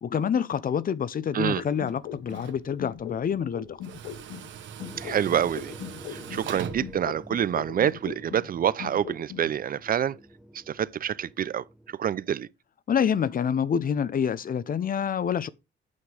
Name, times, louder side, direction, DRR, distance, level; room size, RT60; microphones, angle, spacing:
voice 1, 0.0-3.8 12.9-15.5, left 7 dB, 45° left, 0.8 m, -27 dB
sound 1, 1.5-4.5 4.8-8.5 8.8-9.5, left 10 dB, 90° left, 1.0 m, -40 dB
Tools, 1.6-7.9, right 9 dB, 70° right, 1.3 m, -43 dB
sound 2, 4.8-11.9, equal, 5° right, 0.9 m, -47 dB
voice 2, 5.0-5.7 6.1-10.2 10.7-11.6 12.0-12.5, right 9 dB, 45° right, 0.6 m, -27 dB
8.7 x 6.0 x 5.0 m
cardioid pair, 90°, 20 cm